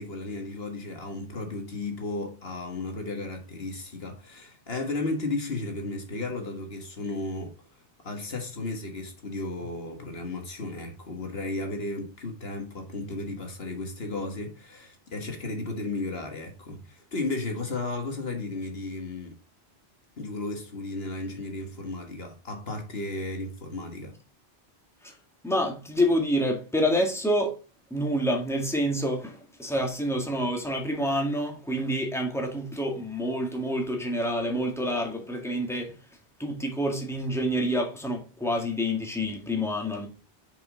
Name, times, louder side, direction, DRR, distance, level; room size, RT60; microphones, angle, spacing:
voice 1, 0.0-7.6 8.0-19.4 20.2-24.1, left 2 dB, 65° left, 1.8 m, -34 dB
voice 2, 25.4-27.6 27.9-36.0 36.4-40.1, equal, ahead, 1.9 m, -27 dB
6.8 x 5.3 x 5.0 m
omnidirectional pair, 1.1 m